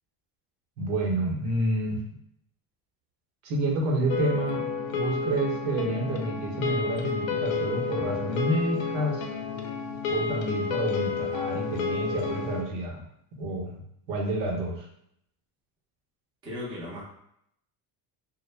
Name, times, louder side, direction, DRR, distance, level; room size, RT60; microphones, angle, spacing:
voice 1, 0.8-2.0 3.4-4.6 4.9-9.2 10.1-13.0 13.4-14.9, right 1 dB, 85° right, 0 dB, 0.9 m, -29 dB
sound 1, 4.1-12.6, left 5 dB, 75° left, 0.5 m, -30 dB
voice 2, 16.4-17.0, left 1 dB, 10° right, -7 dB, 0.4 m, -36 dB
2.1 x 2.1 x 3.1 m, 0.73 s
cardioid pair, 160°, 48 cm